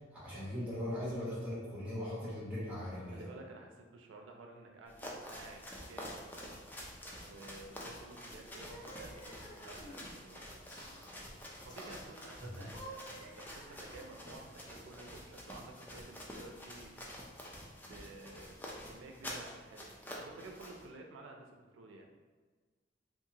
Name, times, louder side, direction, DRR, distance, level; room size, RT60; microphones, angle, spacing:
voice 1, 0.1-3.2 12.4-12.5, left 1 dB, 10° right, -8 dB, 1.0 m, -39 dB
voice 2, 3.1-6.6 7.2-10.8 11.1-16.9 17.8-22.1, right 2 dB, 85° right, 2 dB, 0.4 m, -53 dB
sound 1, 4.9-20.9, equal, 10° left, 0.3 m, -48 dB
sound 2, 8.4-10.1 10.7-11.1 11.7-12.1 12.6-14.3, right 1 dB, 70° left, 1.0 m, -52 dB
2.7 x 2.4 x 2.7 m, 1.4 s
head